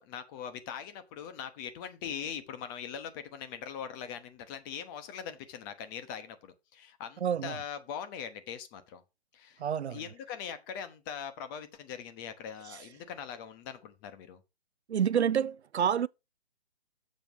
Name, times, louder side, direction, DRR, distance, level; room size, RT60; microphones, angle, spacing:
voice 1, 0.0-9.0 9.3-9.6 9.9-14.4, left 8 dB, 20° left, 0.9 m, -41 dB
voice 2, 7.2-7.6 9.6-10.0 12.6-12.9 14.9-16.1, right 8 dB, 85° right, 0.5 m, -29 dB
7.4 x 4.5 x 6.1 m
figure-of-eight pair, 135°, 32 cm